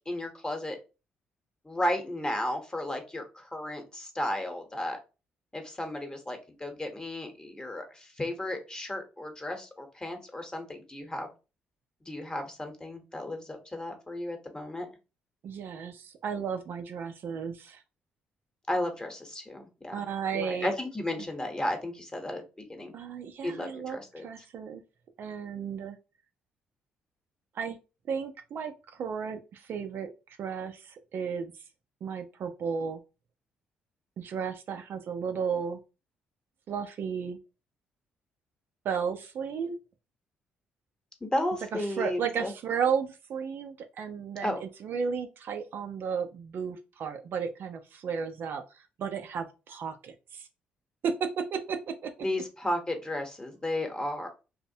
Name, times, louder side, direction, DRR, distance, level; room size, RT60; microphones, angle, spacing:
voice 1, 0.1-0.8 1.6-5.0 5.5-11.3 12.1-14.9 18.7-20.0 20.3-22.4 22.7-22.9 23.4-24.2 41.2-42.5 44.4-44.6 52.2-54.3, left 1 dB, 20° left, 4 dB, 0.9 m, -34 dB
voice 2, 15.4-17.8 19.9-20.7 22.9-24.8 25.2-26.0 27.5-27.8 28.1-30.1 30.4-31.5 32.0-33.0 34.2-35.8 36.7-37.4 38.8-39.8 41.7-50.5 51.0-52.1, right 6 dB, 60° right, 6 dB, 0.4 m, -34 dB
2.5 x 2.0 x 2.6 m, 0.30 s
hypercardioid pair, 55°, 4 cm